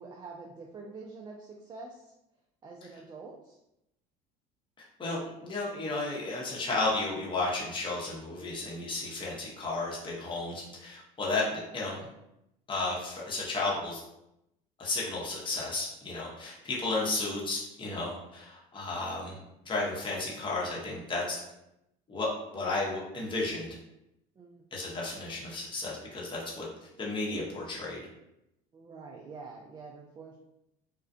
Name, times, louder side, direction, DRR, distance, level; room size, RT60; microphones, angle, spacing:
voice 1, 0.0-2.1 2.6-3.6 10.7-10.8 24.4-24.6 28.7-30.4, right 4 dB, 25° right, 0 dB, 0.3 m, -46 dB
voice 2, 5.0-12.1 12.7-14.0 14.8-21.4 22.1-23.8 24.7-26.7 27.0-28.1, left 2 dB, 25° left, -4 dB, 0.9 m, -33 dB
2.4 x 2.2 x 2.4 m, 0.85 s
supercardioid pair, 90°, 18 cm